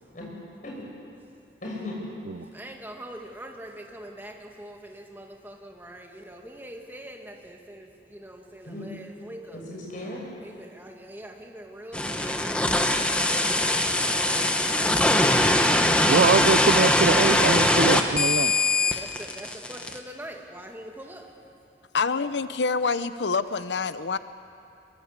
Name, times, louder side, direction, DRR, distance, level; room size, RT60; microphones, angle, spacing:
voice 1, 1.6-2.0 8.6-8.8 9.5-10.2, left 1 dB, 45° left, -2 dB, 6.6 m, -37 dB
voice 2, 2.5-9.6 10.4-14.4 18.8-21.4, right 1 dB, 10° right, 2 dB, 1.9 m, -43 dB
sound 1, 11.9-20.0, left 1 dB, 5° left, 1.1 m, -22 dB
voice 3, 16.0-18.5, right 4 dB, 80° right, 10 dB, 0.6 m, -23 dB
voice 4, 21.9-24.2, left 4 dB, 90° left, 13 dB, 0.8 m, -26 dB
23.0 x 22.5 x 8.2 m, 2.6 s
head